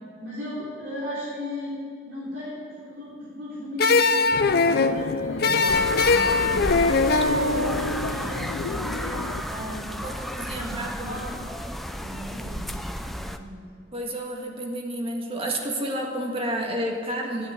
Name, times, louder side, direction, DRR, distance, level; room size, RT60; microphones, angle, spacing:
voice 1, 0.2-1.8 2.1-5.6 6.4-10.0 10.4-11.6 12.0-13.6, left 1 dB, 75° right, -9 dB, 3.6 m, -36 dB
sound 1, 3.8-8.9, left 3 dB, 50° left, 0.6 m, -22 dB
sound 2, 4.3-9.4, left 5 dB, 90° left, 0.4 m, -33 dB
sound 3, 5.7-13.4, equal, ahead, 0.5 m, -33 dB
voice 2, 6.1-6.9 10.0-11.3 13.9-17.5, right 1 dB, 30° right, 1 dB, 1.7 m, -31 dB
12.0 x 9.3 x 9.8 m, 2.2 s
head